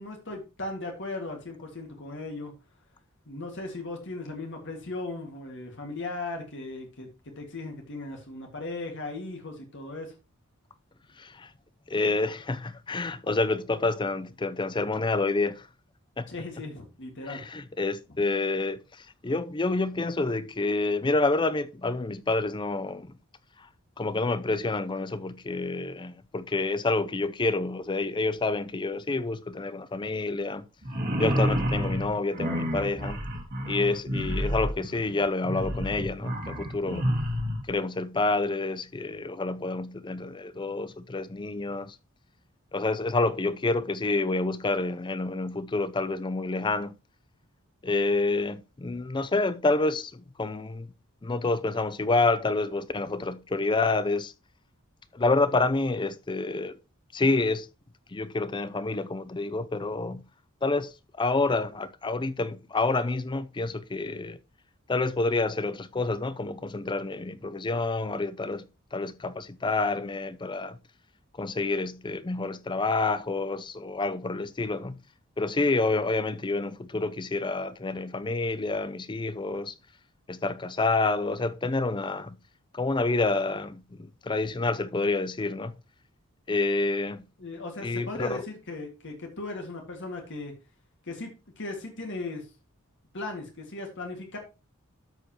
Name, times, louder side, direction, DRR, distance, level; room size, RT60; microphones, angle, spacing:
voice 1, 0.0-2.5 3.3-7.1 7.4-10.1 16.3-17.5 87.4-90.5 91.1-92.5 93.1-94.4, left 2 dB, 60° left, 1.8 m, -37 dB
voice 2, 11.2-11.5 11.9-15.7 16.2-16.3 17.3-23.2 24.0-30.6 31.2-33.2 33.7-37.1 37.7-42.0 42.7-46.9 47.8-50.9 51.2-54.3 55.1-56.8 57.1-57.7 58.1-60.2 60.6-64.4 64.9-68.7 68.9-70.8 71.4-75.0 75.4-79.7 80.3-82.4 82.7-85.7 86.5-87.2 87.8-88.4, left 3 dB, 20° left, 0.5 m, -28 dB
sound 1, 30.8-37.6, equal, 45° right, 2.0 m, -29 dB
13.0 x 5.1 x 2.9 m
head